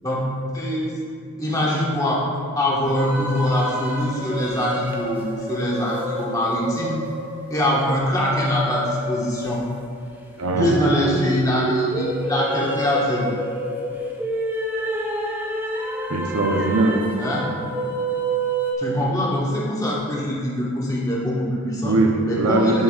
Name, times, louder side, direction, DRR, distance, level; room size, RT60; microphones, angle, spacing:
voice 1, 0.5-1.0 1.4-2.2 2.5-7.0 7.5-9.6 10.5-13.3 17.2-17.6 18.8-21.9 22.3-22.8, left 1 dB, 15° left, -6 dB, 1.4 m, -23 dB
sound 1, 2.8-18.7, right 1 dB, 10° right, 0.7 m, -28 dB
voice 2, 10.4-10.8 16.1-17.1 21.8-22.8, right 2 dB, 75° right, 2 dB, 0.7 m, -20 dB
11.0 x 6.0 x 2.4 m, 2.3 s
head